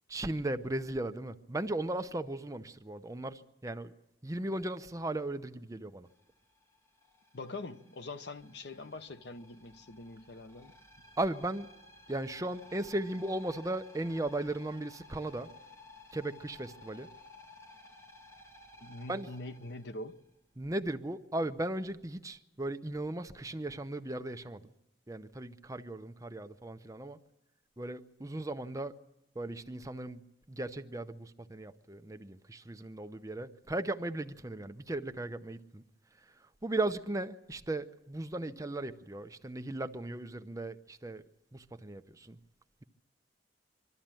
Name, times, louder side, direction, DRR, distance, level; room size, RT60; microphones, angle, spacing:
voice 1, 0.1-3.9 4.2-6.1 11.2-11.7 12.1-15.5 16.1-17.1 19.1-19.3 20.6-24.6 25.1-27.2 27.8-28.9 29.3-30.2 30.5-35.8 36.6-41.2 41.5-42.4, right 2 dB, 20° right, 0.7 m, -37 dB
sound 1, 6.0-20.6, left 2 dB, 15° left, 1.5 m, -56 dB
voice 2, 7.3-10.7 18.8-20.2, left 2 dB, 65° left, 0.9 m, -44 dB
23.5 x 13.5 x 9.0 m
head